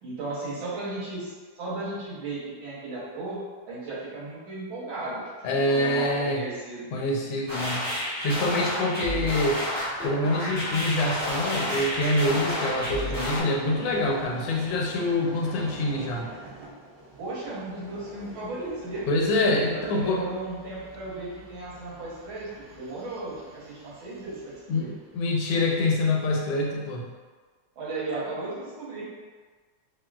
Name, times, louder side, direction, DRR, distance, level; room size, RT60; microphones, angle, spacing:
voice 1, 0.0-6.9 17.2-19.0 19.7-24.9 27.8-29.0, right 2 dB, 85° right, -7 dB, 1.7 m, -35 dB
voice 2, 5.4-6.4 6.9-7.9 8.2-9.6 10.0-16.3 19.1-20.2 24.7-27.1, left 1 dB, 85° left, -1 dB, 1.4 m, -26 dB
sound 1, 7.5-13.4, left 1 dB, 15° left, 0.9 m, -30 dB
Vehicle, 9.5-25.7, right 1 dB, 65° right, 0.9 m, -46 dB
3.7 x 2.3 x 2.2 m, 1.5 s
omnidirectional pair, 2.1 m